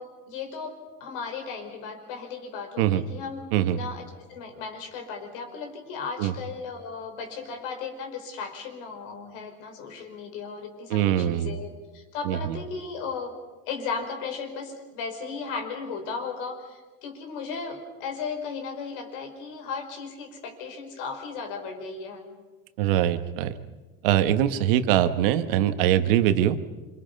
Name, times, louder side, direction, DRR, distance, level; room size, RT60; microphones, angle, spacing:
voice 1, 0.0-3.4 3.7-13.3 13.7-22.2, left 5 dB, 60° left, 4 dB, 5.1 m, -36 dB
voice 2, 10.9-11.5 12.2-12.6 22.8-23.6 24.0-26.6, right 12 dB, 65° right, 10 dB, 1.5 m, -22 dB
28.0 x 26.5 x 5.4 m, 1.2 s
cardioid pair, 175°, 29 cm